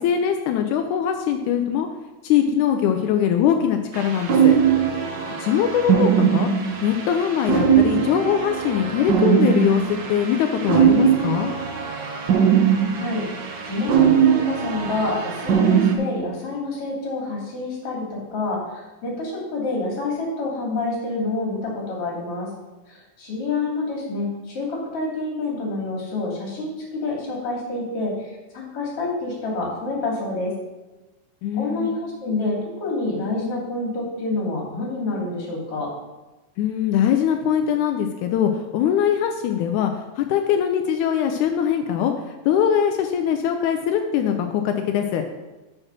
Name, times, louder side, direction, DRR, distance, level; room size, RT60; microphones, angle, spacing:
voice 1, 0.0-1.9 2.2-4.6 5.4-6.5 6.8-11.5 31.4-31.9 36.6-39.9 40.2-45.2, left 9 dB, 85° left, 5 dB, 2.1 m, -22 dB
sound 1, 3.9-15.9, right 8 dB, 90° right, 0.9 m, -20 dB
voice 2, 12.9-13.3 13.6-22.5 22.9-30.5 31.5-35.9, left 2 dB, 50° left, -2 dB, 3.2 m, -28 dB
6.6 x 6.3 x 6.1 m, 1.1 s
omnidirectional pair, 3.5 m